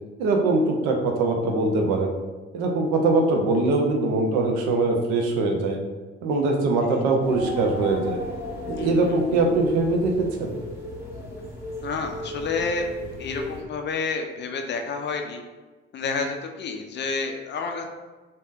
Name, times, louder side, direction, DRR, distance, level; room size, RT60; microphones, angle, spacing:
voice 1, 0.2-2.1 2.5-5.8 6.2-8.2 8.7-10.6, right 3 dB, 60° right, 3 dB, 0.6 m, -22 dB
sound 1, 7.2-13.6, left 1 dB, 10° right, 1.1 m, -35 dB
voice 2, 8.8-9.1 11.8-12.9 13.2-15.4 15.9-17.9, left 4 dB, 35° left, 4 dB, 0.4 m, -29 dB
3.4 x 2.6 x 2.5 m, 1.3 s
figure-of-eight pair, 40°, 31 cm